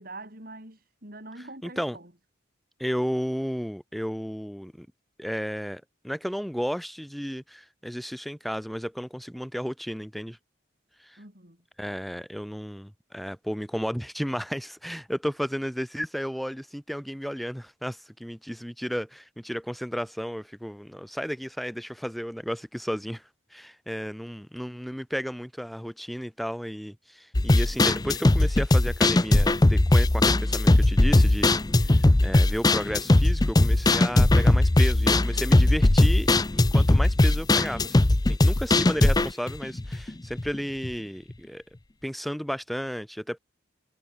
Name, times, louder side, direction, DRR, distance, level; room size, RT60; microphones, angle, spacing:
voice 1, 0.0-2.1 11.2-11.6, right 2 dB, 45° right, 5.9 m, -44 dB
voice 2, 1.6-2.0 2.8-4.9 5.2-10.4 11.0-11.2 11.8-23.2 23.5-38.0 38.3-41.6 42.0-43.4, equal, ahead, 3.3 m, -33 dB
sound 1, 27.3-40.6 40.8-40.9 41.3-41.4, left 2 dB, 20° left, 0.5 m, -20 dB
head